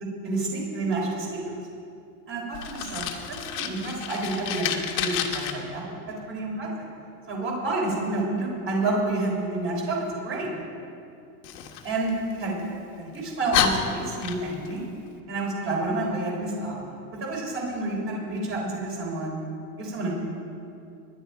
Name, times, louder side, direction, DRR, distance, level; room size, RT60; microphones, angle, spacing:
voice 1, 0.2-1.5 2.3-3.0 3.5-5.8 6.3-6.9 7.3-10.0 10.2-10.5 11.8-12.6 13.0-14.8 15.3-16.8 17.2-19.4 19.8-20.1, right 2 dB, 25° right, -1 dB, 3.9 m, -29 dB
Fire, 2.5-5.5 11.4-12.7 13.1-13.2 13.5-14.7, left 8 dB, 85° left, 1.8 m, -29 dB
22.0 x 11.0 x 4.6 m, 2.6 s
supercardioid pair, 150°, 48 cm